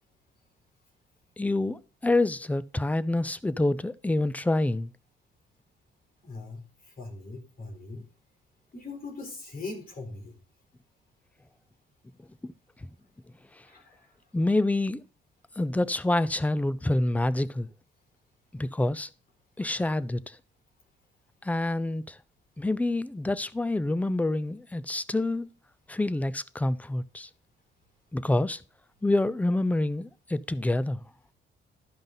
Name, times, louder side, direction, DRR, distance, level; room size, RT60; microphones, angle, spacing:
voice 1, 1.4-4.9 12.4-12.5 14.3-15.0 15.6-17.7 18.5-19.1 19.6-20.4 21.4-22.2 22.6-25.5 25.9-27.3 28.1-28.6 29.0-31.0, left 2 dB, 5° left, 0.5 m, -27 dB
voice 2, 6.2-8.0 8.7-10.4 13.6-14.2, left 3 dB, 50° left, 3.9 m, -41 dB
12.0 x 5.2 x 4.0 m
cardioid pair, 90°, 20 cm